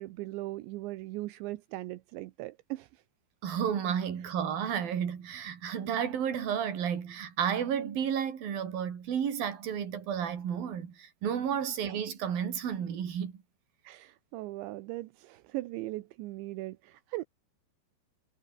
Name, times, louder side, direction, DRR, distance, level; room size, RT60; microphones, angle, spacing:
voice 1, 0.0-3.0 13.8-17.2, right 18 dB, 75° right, 2.9 m, -39 dB
voice 2, 3.4-13.3, right 8 dB, 50° right, 4.5 m, -32 dB
omnidirectional pair, 5.9 m